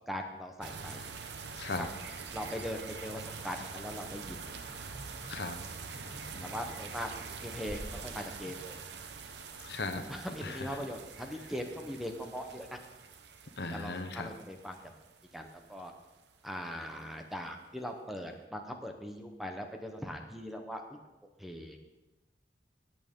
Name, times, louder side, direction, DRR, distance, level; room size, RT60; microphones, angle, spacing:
voice 1, 0.1-1.1 1.8-1.9 2.3-4.4 6.4-7.1 7.4-8.8 10.1-12.8 13.7-14.8 15.3-15.9 16.4-21.0 21.4-21.8, equal, ahead, 3 dB, 0.9 m, -40 dB
sound 1, 0.6-16.5, right 5 dB, 75° right, 0.8 m, -45 dB
voice 2, 1.6-1.9 5.2-5.6 6.3-6.5 9.6-10.0 10.4-10.8 13.6-14.3, left 3 dB, 70° left, 7 dB, 1.0 m, -37 dB
sound 2, 3.4-8.7, equal, 30° right, 2.1 m, -54 dB
sound 3, 7.7-9.5, equal, 25° left, 2.2 m, -48 dB
17.0 x 8.7 x 3.7 m, 1.1 s
head